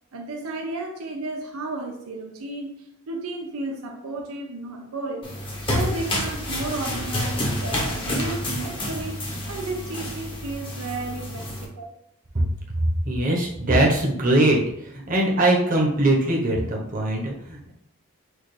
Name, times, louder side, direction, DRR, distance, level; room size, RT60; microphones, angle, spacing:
voice 1, 0.1-2.7 3.1-5.3 5.7-11.9, right 2 dB, 85° right, 2 dB, 0.7 m, -33 dB
sound 1, 5.2-11.7, left 1 dB, 25° left, 0.9 m, -29 dB
voice 2, 13.0-14.6 14.9-17.7, right 1 dB, 40° right, -2 dB, 1.0 m, -21 dB
6.2 x 2.5 x 3.3 m, 0.75 s
head